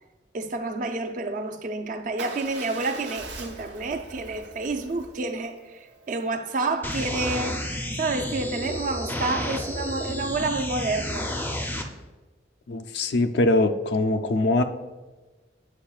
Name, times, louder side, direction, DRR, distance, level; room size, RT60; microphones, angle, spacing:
voice 1, 0.3-7.6 7.9-11.3, right 3 dB, 45° right, 0.4 m, -29 dB
Motorcycle / Engine starting / Idling, 2.2-6.3, right 3 dB, 75° right, 0.8 m, -42 dB
sound 1, 6.8-11.8, left 1 dB, 10° left, 0.4 m, -31 dB
voice 2, 12.7-14.6, left 2 dB, 70° left, 0.4 m, -22 dB
8.8 x 4.7 x 2.3 m
head